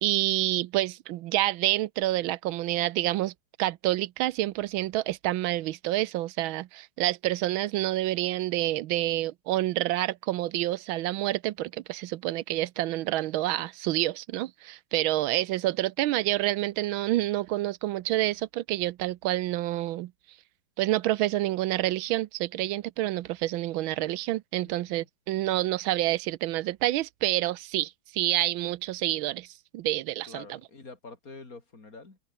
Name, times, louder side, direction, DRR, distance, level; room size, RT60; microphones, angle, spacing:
voice 1, 0.0-3.3 3.6-20.1 20.8-29.5 29.7-30.4, right 15 dB, 75° right, 1.4 m, -28 dB
voice 2, 24.6-25.1 30.3-32.2, left 3 dB, 40° left, 4.1 m, -46 dB
omnidirectional pair, 2.3 m